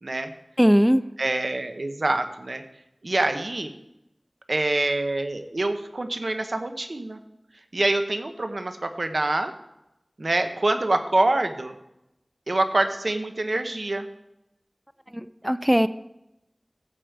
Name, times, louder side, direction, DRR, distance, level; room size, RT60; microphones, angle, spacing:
voice 1, 0.6-1.0 15.1-15.9, equal, 5° right, 13 dB, 0.4 m, -19 dB
voice 2, 1.2-2.6 3.0-3.7 4.5-7.2 7.7-9.5 10.2-11.7 12.5-14.1, right 2 dB, 90° right, 7 dB, 0.9 m, -25 dB
13.5 x 5.1 x 7.8 m, 0.87 s
wide cardioid pair, 40°, 0 cm